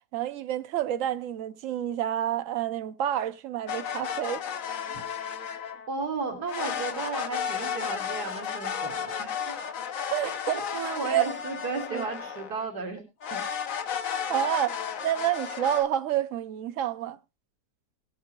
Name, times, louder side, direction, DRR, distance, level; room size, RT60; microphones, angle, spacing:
voice 1, 0.1-4.4 10.1-10.6 11.1-11.3 11.9-12.0 14.3-17.2, right 11 dB, 60° right, 1.1 m, -28 dB
sound 1, 3.7-5.9 6.5-12.7 13.2-15.8, left 7 dB, 60° left, 1.3 m, -33 dB
voice 2, 5.9-9.6 9.9-10.1 10.7-13.0 13.3-13.4, right 4 dB, 75° right, 2.6 m, -34 dB
18.5 x 8.2 x 3.0 m
omnidirectional pair, 1.7 m